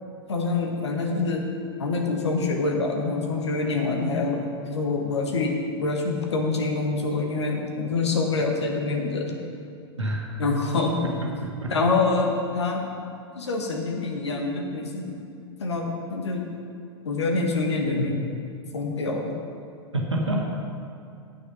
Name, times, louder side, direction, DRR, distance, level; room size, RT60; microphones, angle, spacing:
voice 1, 0.3-1.5 1.8-9.4 10.4-11.0 11.7-12.9 13.3-15.1 15.6-16.5 17.0-18.2 18.7-19.3, left 3 dB, 75° left, 1 dB, 1.3 m, -26 dB
voice 2, 10.0-10.3 11.2-11.7 19.9-20.6, right 1 dB, 90° right, -2 dB, 1.4 m, -28 dB
8.7 x 6.9 x 5.5 m, 2.5 s
figure-of-eight pair, 95°, 15 cm